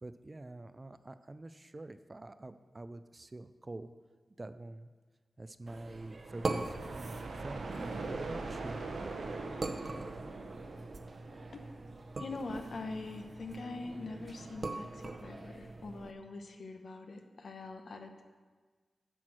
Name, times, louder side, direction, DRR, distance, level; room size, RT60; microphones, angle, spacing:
voice 1, 0.0-3.9 4.4-4.9 5.4-6.6 6.9-8.8, right 2 dB, 30° right, 12 dB, 0.3 m, -46 dB
sound 1, 5.7-16.1, right 2 dB, 45° right, 0.7 m, -43 dB
sound 2, 6.2-12.0, right 3 dB, 75° right, 0.9 m, -42 dB
voice 2, 12.2-18.2, left 3 dB, 65° left, 5 dB, 0.9 m, -43 dB
10.0 x 4.5 x 6.2 m, 1.4 s
wide cardioid pair, 90°, 0 cm